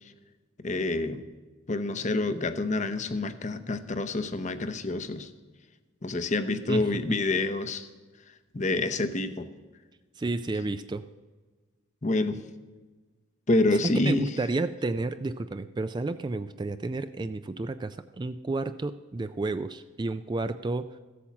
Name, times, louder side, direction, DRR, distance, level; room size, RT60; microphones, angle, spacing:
voice 1, 0.6-1.3 1.7-5.3 6.0-7.9 8.5-9.5 12.0-12.4 13.5-14.3, left 2 dB, 35° left, 11 dB, 0.7 m, -27 dB
voice 2, 10.2-11.0 13.8-20.9, right 2 dB, 20° right, 11 dB, 0.3 m, -31 dB
14.5 x 8.5 x 7.2 m, 1.3 s
head